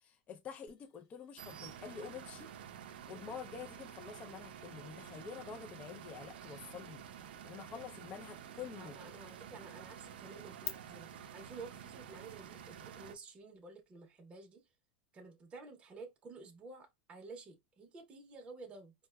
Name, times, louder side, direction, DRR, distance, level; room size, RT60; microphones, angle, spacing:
voice 1, 0.0-2.5 3.1-7.0 7.4-9.0, left 6 dB, 25° left, 0.4 m, -48 dB
sound 1, 0.7-10.7, left 10 dB, 50° left, 1.0 m, -55 dB
sound 2, 1.4-13.1, right 9 dB, 90° right, 0.4 m, -50 dB
voice 2, 8.7-14.6 15.1-18.9, right 3 dB, 20° right, 0.7 m, -52 dB
4.4 x 2.1 x 2.2 m
supercardioid pair, 140°, 5 cm